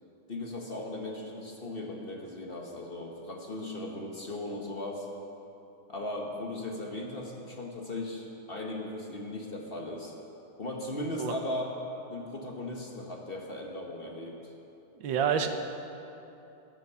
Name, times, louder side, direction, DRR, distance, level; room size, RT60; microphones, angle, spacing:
voice 1, 0.3-5.1 5.9-10.1 10.6-11.7 12.1-14.4, left 1 dB, 35° left, 0 dB, 1.2 m, -37 dB
voice 2, 15.0-15.5, right 7 dB, 90° right, 7 dB, 1.6 m, -27 dB
14.0 x 9.1 x 6.8 m, 2.9 s
omnidirectional pair, 2.0 m